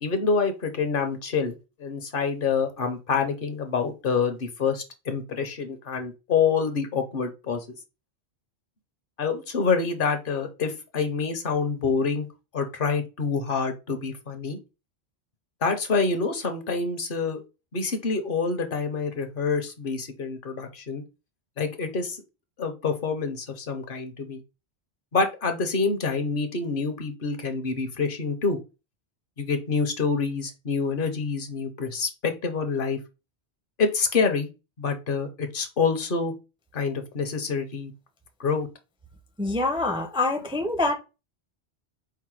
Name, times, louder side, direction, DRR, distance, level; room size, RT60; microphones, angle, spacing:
voice 1, 0.0-7.6 9.2-12.3 12.5-14.6 15.6-17.4 17.7-21.0 21.6-22.2 22.6-24.4 25.1-28.6 29.4-33.0 33.8-34.5 34.8-36.3 36.7-37.9 38.4-38.7, left 5 dB, 55° left, 0.9 m, -27 dB
voice 2, 39.4-40.9, left 2 dB, 5° right, 0.4 m, -25 dB
4.7 x 2.1 x 4.5 m
omnidirectional pair, 1.1 m